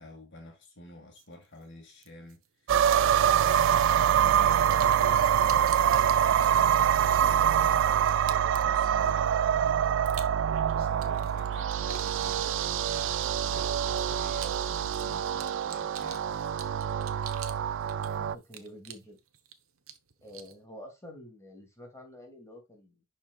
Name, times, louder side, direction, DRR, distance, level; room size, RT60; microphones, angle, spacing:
voice 1, 0.0-2.7 3.2-10.4 10.6-16.4, left 1 dB, 60° left, 1.9 m, -49 dB
sound 1, 1.2-1.3 2.0-2.3 2.7-3.1 4.3-17.6 17.9-19.5 19.9-20.6, right 7 dB, 80° right, 1.0 m, -46 dB
sound 2, 2.7-18.3, right 9 dB, 60° right, 0.3 m, -25 dB
voice 2, 18.0-19.2 20.2-23.0, left 1 dB, 15° left, 2.5 m, -48 dB
11.0 x 4.5 x 2.4 m
head